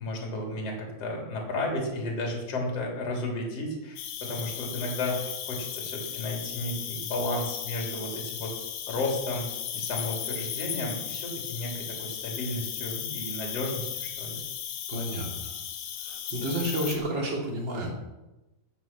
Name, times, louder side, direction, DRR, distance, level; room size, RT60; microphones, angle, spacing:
voice 1, 0.0-8.5 8.9-14.4, left 2 dB, 35° left, 0 dB, 4.1 m, -33 dB
Cricket, 4.0-17.0, left 9 dB, 65° left, 2.9 m, -36 dB
voice 2, 14.9-15.5 16.0-17.9, right 1 dB, 30° right, -1 dB, 3.0 m, -31 dB
15.0 x 9.7 x 6.1 m, 1.0 s
omnidirectional pair, 5.0 m